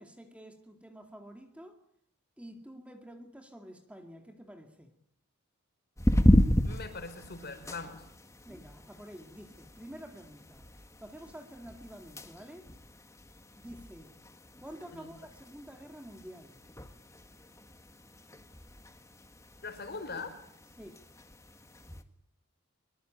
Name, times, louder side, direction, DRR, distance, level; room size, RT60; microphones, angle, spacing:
voice 1, 0.0-1.8 2.4-4.9 8.4-10.7 11.0-12.7 13.6-14.1 14.6-16.6 20.8-21.0, equal, 5° right, 2.2 m, -49 dB
sound 1, 6.0-22.0, equal, 15° left, 1.8 m, -33 dB
voice 2, 6.6-8.0 14.9-15.1 19.6-20.4, left 4 dB, 50° left, 5.2 m, -41 dB
24.5 x 24.0 x 9.2 m
head